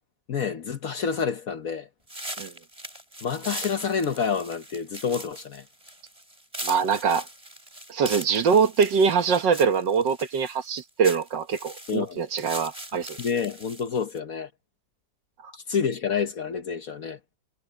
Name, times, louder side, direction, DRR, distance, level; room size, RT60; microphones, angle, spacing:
voice 1, 0.3-1.9 3.2-5.6 11.9-12.2 13.2-14.5 15.5-17.2, left 6 dB, 55° left, 1.2 m, -28 dB
sound 1, 2.1-14.2, right 1 dB, 15° right, 5.5 m, -40 dB
voice 2, 6.6-7.3 7.9-13.2, right 6 dB, 75° right, 2.0 m, -23 dB
omnidirectional pair, 2.0 m